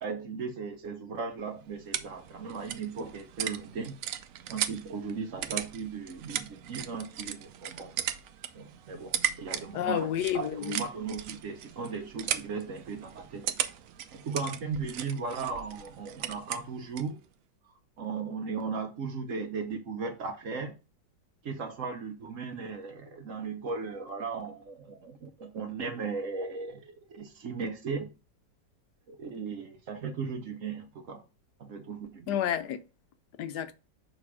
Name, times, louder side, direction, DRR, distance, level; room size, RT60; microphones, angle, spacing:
voice 1, 0.0-4.0 4.5-7.9 8.5-13.5 14.1-17.2 18.0-20.8 21.4-28.1 29.1-31.2 31.6-32.4, right 5 dB, 55° right, 1.0 m, -37 dB
sound 1, 1.3-17.2, right 10 dB, 85° right, 0.7 m, -38 dB
voice 2, 9.7-10.8 32.3-32.8 33.4-33.7, left 10 dB, 70° left, 1.1 m, -30 dB
6.4 x 3.3 x 4.8 m
omnidirectional pair, 2.0 m